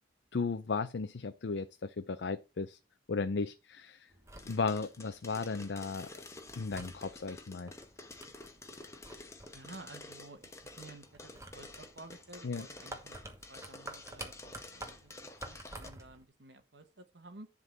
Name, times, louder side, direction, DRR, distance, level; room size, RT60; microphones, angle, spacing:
voice 1, 0.3-2.8 3.1-4.1 4.5-6.1 6.6-7.7 12.4-12.7, left 4 dB, 70° left, 0.5 m, -35 dB
sound 1, 4.1-16.2, right 2 dB, 15° right, 1.2 m, -51 dB
sound 2, 4.4-15.9, left 2 dB, 15° left, 1.0 m, -50 dB
voice 2, 9.5-15.1 15.4-17.5, right 2 dB, 70° right, 1.3 m, -53 dB
11.0 x 3.8 x 7.3 m
head